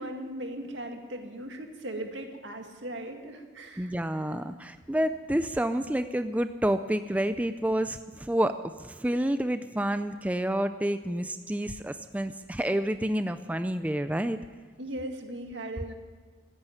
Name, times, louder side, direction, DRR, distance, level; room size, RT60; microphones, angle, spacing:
voice 1, 0.0-3.9 14.8-15.9, right 1 dB, 80° right, 3 dB, 2.0 m, -38 dB
voice 2, 3.8-14.4, right 1 dB, 10° right, 10 dB, 0.4 m, -29 dB
14.5 x 9.9 x 9.7 m, 1.5 s
head